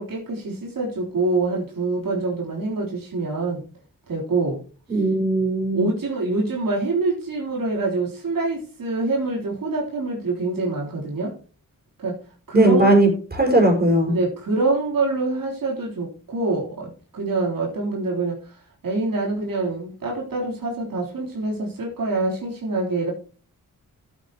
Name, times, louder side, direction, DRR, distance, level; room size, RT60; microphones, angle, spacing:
voice 1, 0.0-3.6 4.1-4.6 5.7-11.3 12.0-12.2 12.5-12.9 14.1-18.4 18.8-23.1, right 3 dB, 85° right, -2 dB, 3.6 m, -25 dB
voice 2, 4.9-5.9 12.5-14.2, right 2 dB, 30° right, 1 dB, 5.5 m, -18 dB
14.0 x 8.3 x 3.0 m, 0.37 s
cardioid pair, 65°, 34 cm